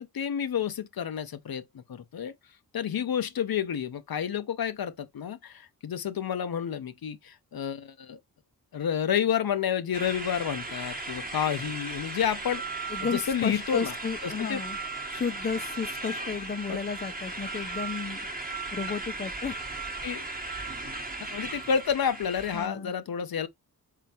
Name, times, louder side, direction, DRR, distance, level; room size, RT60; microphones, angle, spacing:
voice 1, 0.0-2.3 2.7-8.2 8.7-13.9 14.2-14.6 16.7-16.8 20.0-20.2 20.8-20.9 21.2-23.5, left 8 dB, 65° left, 0.7 m, -30 dB
sound 1, 9.9-22.7, right 3 dB, 20° right, 1.1 m, -36 dB
voice 2, 12.9-14.8 15.1-18.2 18.7-19.6 22.5-22.9, left 5 dB, 25° left, 0.5 m, -33 dB
3.8 x 3.7 x 2.8 m
cardioid pair, 60°, 40 cm